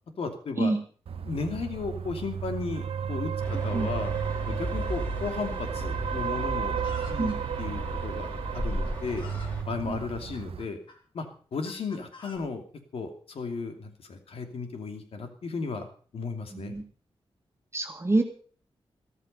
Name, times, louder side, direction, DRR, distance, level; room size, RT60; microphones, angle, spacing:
voice 1, 0.2-0.7 1.2-4.1 4.4-6.8 7.1-9.3 9.7-10.8 11.1-11.3 11.5-12.6 12.9-15.9 16.1-16.7, left 4 dB, 75° left, 6 dB, 2.8 m, -35 dB
sound 1, 1.1-10.7, right 8 dB, 75° right, 0.7 m, -33 dB
sound 2, 3.4-9.6, equal, 15° left, 5.4 m, -35 dB
Chicken rooster, 6.7-7.4 8.3-8.4 8.8-9.6 10.3-11.0 11.6-12.4, left 2 dB, 55° left, 3.7 m, -48 dB
voice 2, 16.5-16.8 17.7-18.2, right 2 dB, 25° right, 3 dB, 2.1 m, -26 dB
14.0 x 14.0 x 5.6 m, 0.43 s
wide cardioid pair, 115°, 10 cm